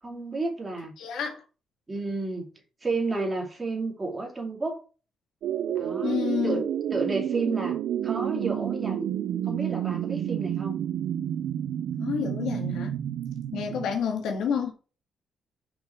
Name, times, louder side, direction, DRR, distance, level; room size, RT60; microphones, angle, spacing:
voice 1, 0.0-0.9 1.9-2.5 2.8-4.8 5.8-6.2 6.4-6.6 6.9-7.8 8.0-9.1 9.4-10.8, right 3 dB, 20° right, 2.5 m, -31 dB
voice 2, 1.0-1.4 6.0-6.6 12.0-12.9 13.5-14.7, left 7 dB, 90° left, 1.9 m, -29 dB
sound 1, 5.4-14.0, right 10 dB, 70° right, 0.6 m, -30 dB
6.0 x 5.3 x 5.8 m
cardioid pair, 155°, 0 cm